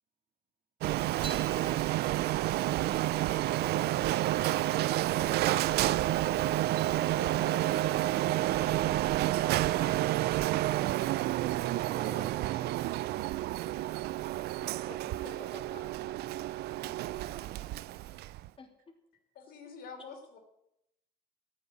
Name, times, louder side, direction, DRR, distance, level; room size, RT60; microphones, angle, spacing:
Printer, 0.8-18.5, right 15 dB, 70° right, 0.4 m, -30 dB
sound 1, 1.2-7.8, right 3 dB, 30° right, 3.1 m, -52 dB
voice 1, 5.1-5.4 11.9-13.0 16.6-17.8, right 5 dB, 55° right, 4 dB, 2.5 m, -47 dB
voice 2, 7.2-8.3 8.6-10.6 11.0-11.2 13.6-13.7 14.4-16.0 16.5-16.6 16.8-17.0 18.0-18.1 18.6-18.7, left 3 dB, 30° left, 3 dB, 2.8 m, -51 dB
voice 3, 19.4-20.4, left 5 dB, 65° left, 4 dB, 3.4 m, -47 dB
11.0 x 8.6 x 9.0 m, 0.82 s
cardioid pair, 110°, 17 cm